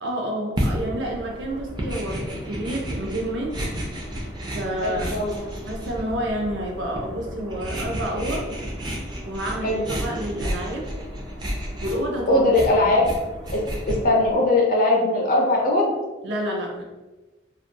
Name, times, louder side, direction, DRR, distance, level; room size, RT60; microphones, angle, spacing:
voice 1, 0.0-3.5 3.9-4.0 4.5-5.1 5.6-8.4 9.3-10.9 11.8-12.5 12.7-13.0 16.2-16.8, right 1 dB, 75° right, 0 dB, 0.5 m, -29 dB
sound 1, 0.6-14.4, equal, 25° right, 0.4 m, -32 dB
voice 2, 4.8-5.5 9.6-9.8 12.3-13.1 13.5-13.6 13.9-15.9, left 2 dB, 45° left, -1 dB, 0.4 m, -20 dB
2.3 x 2.2 x 2.6 m, 1.1 s
head